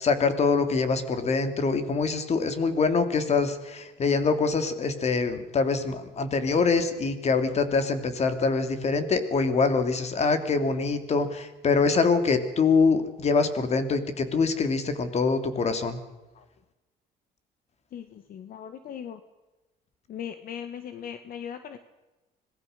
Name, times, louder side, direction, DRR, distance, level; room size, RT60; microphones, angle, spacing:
voice 1, 0.0-16.0, left 4 dB, 40° left, 9 dB, 2.9 m, -24 dB
voice 2, 17.9-19.2 20.1-21.8, left 8 dB, 60° left, 9 dB, 1.7 m, -39 dB
26.0 x 19.0 x 6.7 m, 1.1 s
cardioid pair, 110°, 17 cm